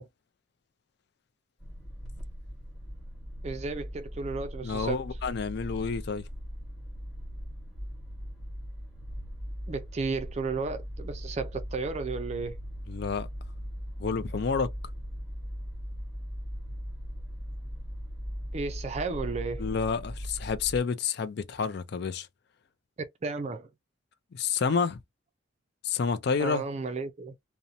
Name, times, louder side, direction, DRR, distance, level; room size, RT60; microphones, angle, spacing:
sound 1, 1.6-20.8, equal, ahead, 1.2 m, -39 dB
voice 1, 3.4-5.0 9.7-12.6 18.5-19.6 23.2-23.7 26.4-27.3, right 4 dB, 35° right, 0.4 m, -33 dB
voice 2, 4.6-6.3 12.9-13.3 14.0-14.7 19.6-22.3 24.3-25.0 25.8-26.6, left 5 dB, 55° left, 0.4 m, -29 dB
2.5 x 2.1 x 2.7 m
head